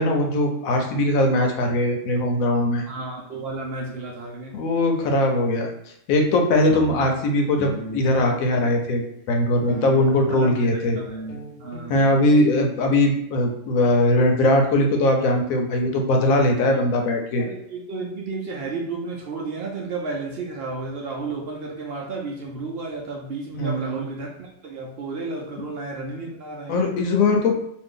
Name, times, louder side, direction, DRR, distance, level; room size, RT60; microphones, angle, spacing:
voice 1, 0.0-2.8 4.5-5.7 6.1-11.0 11.9-17.5 23.5-24.0 26.7-27.6, left 1 dB, 85° left, 3 dB, 1.0 m, -20 dB
voice 2, 2.9-4.6 9.6-11.3 11.6-12.0 17.4-26.8, right 3 dB, 65° right, -1 dB, 0.6 m, -32 dB
sound 1, 3.1-3.5 6.4-6.5 6.6-9.0 9.7-12.6, left 2 dB, 40° left, 0.9 m, -36 dB
2.6 x 2.4 x 3.6 m, 0.74 s
omnidirectional pair, 1.4 m